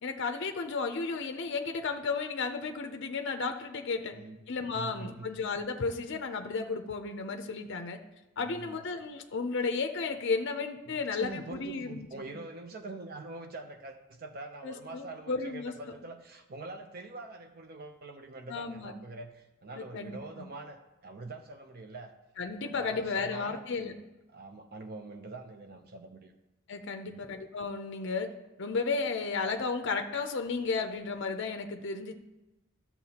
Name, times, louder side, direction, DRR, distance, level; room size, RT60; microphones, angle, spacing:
voice 1, 0.0-4.2 4.5-8.0 8.4-12.4 14.6-15.8 18.5-18.9 19.7-20.5 22.4-23.9 26.7-28.3 28.6-32.1, left 4 dB, 55° left, 6 dB, 0.5 m, -33 dB
voice 2, 4.0-4.4 4.7-5.3 8.4-8.8 10.8-22.1 22.6-24.0 24.3-26.3 26.9-27.2, right 2 dB, 45° right, 6 dB, 0.6 m, -44 dB
12.5 x 7.0 x 2.9 m, 1.0 s
head